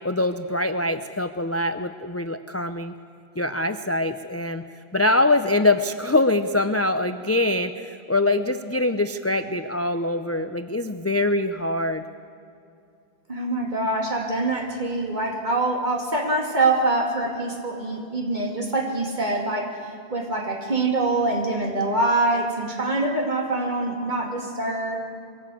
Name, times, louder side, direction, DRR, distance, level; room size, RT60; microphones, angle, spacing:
voice 1, 0.0-2.9 3.4-4.6 4.9-12.0, left 2 dB, 20° left, 9 dB, 0.5 m, -23 dB
voice 2, 13.3-19.8 20.1-25.0, right 2 dB, 45° right, 1 dB, 2.9 m, -24 dB
22.5 x 17.0 x 8.6 m, 2.6 s
omnidirectional pair, 1.1 m